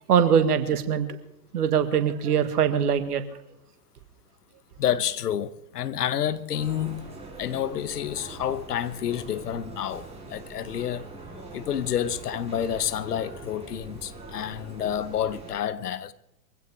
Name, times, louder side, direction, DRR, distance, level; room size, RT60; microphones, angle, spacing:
voice 1, 0.1-1.1 1.5-3.2, right 8 dB, 65° right, 1.9 m, -22 dB
voice 2, 4.8-7.1 7.4-11.1 11.5-16.1, left 10 dB, 65° left, 1.1 m, -29 dB
sound 1, 6.5-15.5, right 3 dB, 10° right, 6.1 m, -43 dB
23.0 x 16.0 x 3.6 m
figure-of-eight pair, 95°, 49 cm